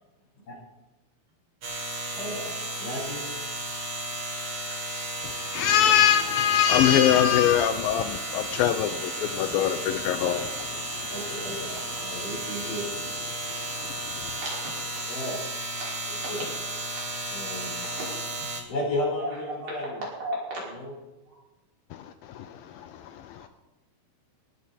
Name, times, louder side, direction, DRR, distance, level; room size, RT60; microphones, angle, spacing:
sound 1, 1.6-18.6, right 2 dB, 45° right, 2.4 m, -34 dB
voice 1, 2.1-2.5 2.8-3.2 11.1-12.9 15.1-15.4 16.1-16.4 17.3-17.7 18.7-20.0 20.6-20.9, left 1 dB, 55° left, 6.1 m, -33 dB
voice 2, 5.2-10.4 10.8-11.1 21.9-23.5, left 10 dB, 80° left, 2.3 m, -23 dB
voice 3, 17.6-18.1 19.2-20.6 21.3-21.4, right 1 dB, 70° right, 7.0 m, -36 dB
18.0 x 13.0 x 4.3 m
omnidirectional pair, 4.4 m